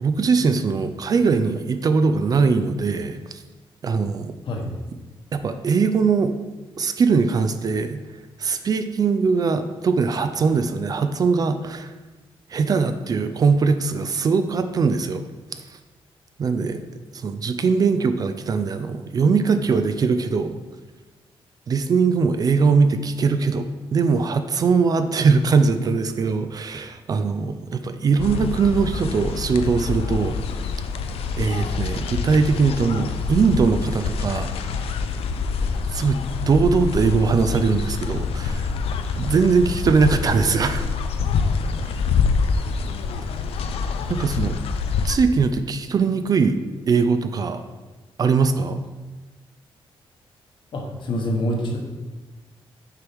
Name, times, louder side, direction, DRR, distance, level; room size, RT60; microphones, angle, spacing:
voice 1, 0.0-3.4 3.8-4.4 5.3-6.3 6.8-8.0 8.4-11.9 12.5-15.2 16.4-16.9 17.1-20.6 21.7-30.4 31.4-34.5 35.9-36.2 36.5-38.7 39.2-40.9 44.1-44.6 45.0-46.5 46.9-47.6 48.2-48.8, right 5 dB, 40° right, 9 dB, 0.3 m, -21 dB
sound 1, 28.2-45.2, left 5 dB, 85° left, 0.4 m, -26 dB
voice 2, 50.7-51.8, left 1 dB, 60° left, 1 dB, 1.0 m, -25 dB
6.7 x 4.6 x 3.5 m, 1.2 s
wide cardioid pair, 145°, 10 cm